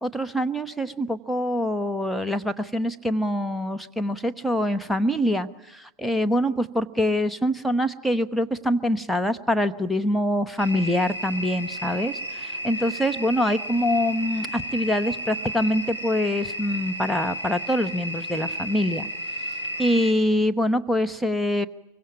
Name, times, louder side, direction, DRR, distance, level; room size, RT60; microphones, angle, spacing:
voice 1, 0.0-19.1 19.8-21.7, equal, ahead, 6 dB, 1.2 m, -25 dB
sound 1, 10.6-20.1, equal, 85° left, 4.1 m, -33 dB
25.0 x 24.0 x 9.0 m, 0.89 s
figure-of-eight pair, 90°, 0 cm